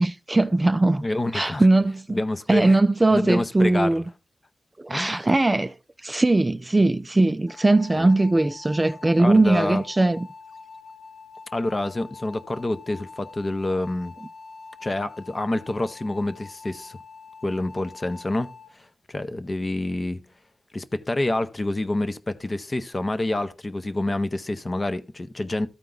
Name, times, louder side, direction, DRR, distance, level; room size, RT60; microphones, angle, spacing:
voice 1, 0.0-1.1 1.3-2.2 2.5-4.0 4.8-5.7 6.0-10.3, right 2 dB, 20° right, 0.4 m, -20 dB
voice 2, 1.0-1.7 2.1-2.8 3.1-3.9 4.9-5.3 7.9-8.1 9.2-9.8 11.5-14.1 14.8-17.0 17.4-20.2 20.7-25.7, left 2 dB, 30° left, 0.7 m, -27 dB
sound 1, 7.5-18.7, left 4 dB, 90° left, 2.7 m, -45 dB
13.5 x 4.5 x 3.8 m
wide cardioid pair, 90°, 0 cm